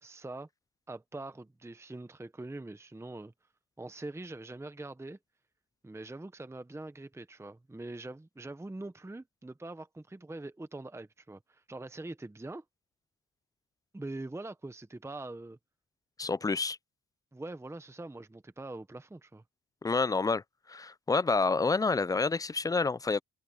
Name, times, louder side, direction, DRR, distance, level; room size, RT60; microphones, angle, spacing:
voice 1, 0.0-0.5 0.9-3.3 3.8-5.2 5.8-12.6 13.9-15.6 17.3-19.4, right 2 dB, 10° right, 1.0 m, -43 dB
voice 2, 16.2-16.8 19.8-20.4 20.7-23.2, left 4 dB, 15° left, 0.3 m, -28 dB
cardioid pair, 90°, 30 cm